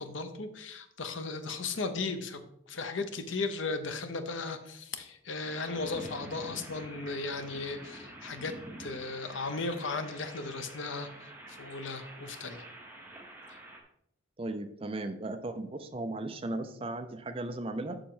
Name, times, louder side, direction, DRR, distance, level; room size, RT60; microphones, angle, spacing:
voice 1, 0.0-2.4 2.7-8.5 8.8-12.6 13.5-13.6, left 3 dB, 75° left, 9 dB, 0.8 m, -36 dB
sound 1, 5.4-13.8, right 1 dB, 10° right, 1.0 m, -48 dB
voice 2, 14.4-18.0, right 2 dB, 30° right, 8 dB, 0.5 m, -36 dB
6.9 x 6.3 x 3.8 m, 0.73 s
head